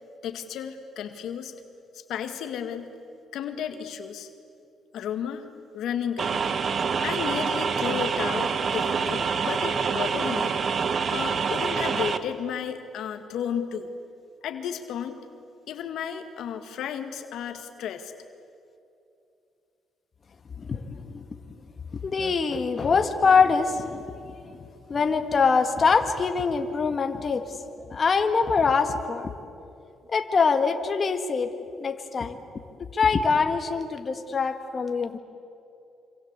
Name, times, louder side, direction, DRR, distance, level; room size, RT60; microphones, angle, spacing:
voice 1, 0.2-1.5 2.1-2.9 3.3-4.3 4.9-5.4 5.7-6.5 7.0-10.6 11.1-13.9 14.4-15.2 15.7-18.1, left 8 dB, 80° left, 7 dB, 1.9 m, -33 dB
sound 1, 6.2-12.2, right 6 dB, 50° right, 1.5 m, -26 dB
voice 2, 20.6-21.3 21.9-24.6 24.9-27.6 27.9-29.3 30.1-32.4 32.9-35.2, left 5 dB, 40° left, 6 dB, 1.9 m, -24 dB
27.0 x 26.5 x 8.2 m, 2.7 s
cardioid pair, 90°, 0 cm